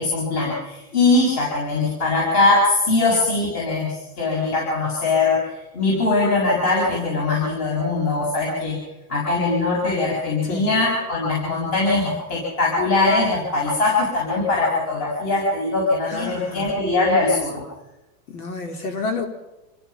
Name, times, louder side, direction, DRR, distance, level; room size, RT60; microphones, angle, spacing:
voice 1, 0.0-8.8 9.1-17.6, left 3 dB, 35° left, -4 dB, 7.2 m, -21 dB
voice 2, 16.1-16.7 18.3-19.3, left 3 dB, 75° left, 5 dB, 4.3 m, -29 dB
27.5 x 17.0 x 6.0 m, 1.0 s
supercardioid pair, 170°, 45 cm